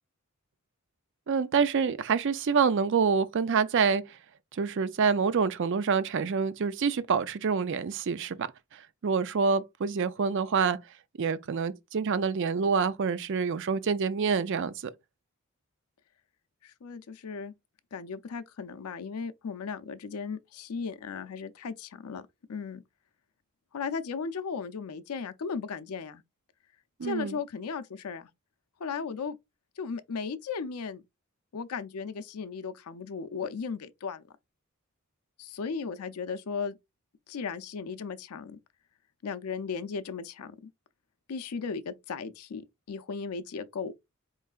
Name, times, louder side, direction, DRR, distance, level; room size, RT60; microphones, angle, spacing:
voice 1, 1.3-4.2 4.5-10.8 11.2-14.9 27.0-27.4, right 5 dB, 55° right, 0.4 m, -27 dB
voice 2, 16.6-17.5 17.9-22.8 23.7-26.2 27.0-28.3 28.8-29.4 29.8-31.0 31.5-34.2 35.4-36.8 37.3-38.6 39.2-40.7 41.3-43.9, left 5 dB, 80° left, 0.5 m, -36 dB
4.5 x 3.1 x 2.4 m
head